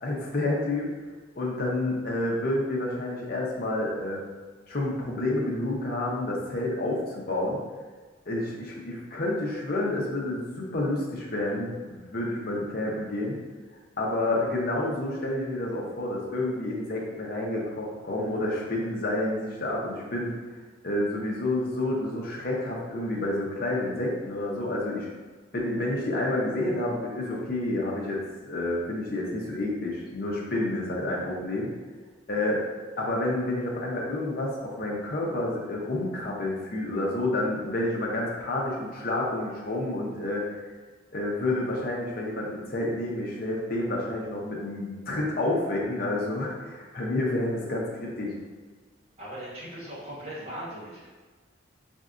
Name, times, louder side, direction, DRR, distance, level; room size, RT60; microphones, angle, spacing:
voice 1, 0.0-0.9 1.4-4.2 4.7-7.6 8.3-13.4 14.0-20.3 20.8-25.1 25.5-31.7 32.3-32.6 33.0-40.4 41.1-48.3, left 1 dB, 55° left, -3 dB, 0.7 m, -29 dB
voice 2, 49.2-51.1, right 1 dB, 35° right, -8 dB, 1.2 m, -39 dB
4.3 x 2.6 x 2.4 m, 1.4 s
head